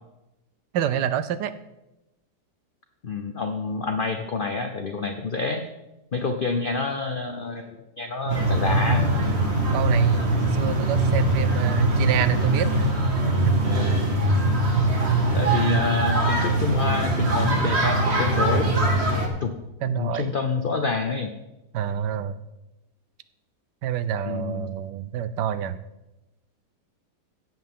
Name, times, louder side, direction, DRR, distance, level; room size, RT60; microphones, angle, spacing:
voice 1, 0.7-1.5 8.3-8.4 9.7-12.9 13.5-13.6 19.8-20.3 21.7-22.4 23.8-25.8, right 9 dB, 80° right, 13 dB, 1.3 m, -27 dB
voice 2, 3.0-5.6 6.1-9.0 14.7-14.9 15.3-18.7 19.4-19.5 19.9-21.3 24.3-24.7, left 4 dB, 50° left, 6 dB, 0.6 m, -27 dB
sound 1, 8.3-19.3, right 2 dB, 40° right, 1.8 m, -22 dB
16.5 x 7.9 x 3.7 m, 0.97 s
omnidirectional pair, 1.8 m